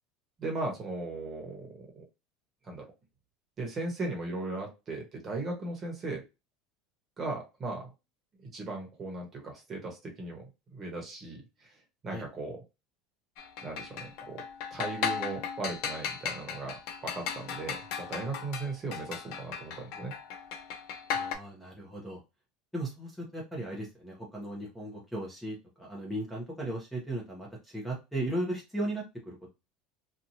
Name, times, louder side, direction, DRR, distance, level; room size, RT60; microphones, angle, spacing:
voice 1, 0.4-2.0 2.6-2.9 3.6-6.2 7.2-7.9 8.4-11.8 12.0-12.6 13.6-14.4 14.7-20.1, right 2 dB, 30° right, 1 dB, 1.2 m, -37 dB
sound 1, 13.4-21.4, left 7 dB, 65° left, 0.6 m, -36 dB
voice 2, 21.1-22.2 22.7-29.5, right 1 dB, ahead, -3 dB, 0.9 m, -36 dB
2.9 x 2.5 x 2.7 m, 0.25 s
supercardioid pair, 140°, 0 cm